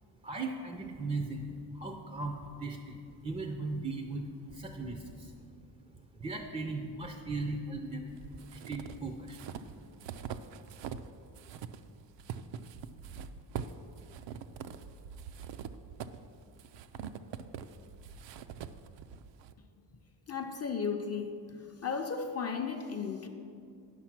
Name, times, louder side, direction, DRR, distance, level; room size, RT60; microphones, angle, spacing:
voice 1, 0.2-1.5 1.7-5.3 6.1-9.4, right 3 dB, 15° right, 3 dB, 0.4 m, -38 dB
sound 1, 8.1-11.1 11.4-19.5, right 7 dB, 70° right, 0.5 m, -44 dB
voice 2, 20.3-23.3, left 6 dB, 35° left, 4 dB, 0.5 m, -35 dB
10.0 x 6.3 x 5.9 m, 2.4 s
wide cardioid pair, 175°, 45 cm